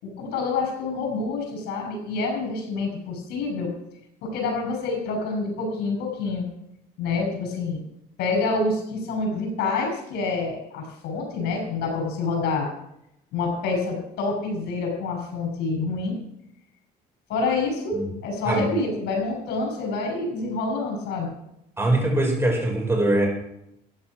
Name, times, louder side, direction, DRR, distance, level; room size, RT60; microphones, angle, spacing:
voice 1, 0.0-3.7 4.2-6.5 7.0-7.8 8.2-12.7 13.3-16.2 17.3-21.4, left 3 dB, 80° left, 2 dB, 6.4 m, -27 dB
voice 2, 21.8-23.3, right 1 dB, 15° right, 1 dB, 5.1 m, -22 dB
14.5 x 9.9 x 6.1 m, 0.80 s
cardioid pair, 110°, 17 cm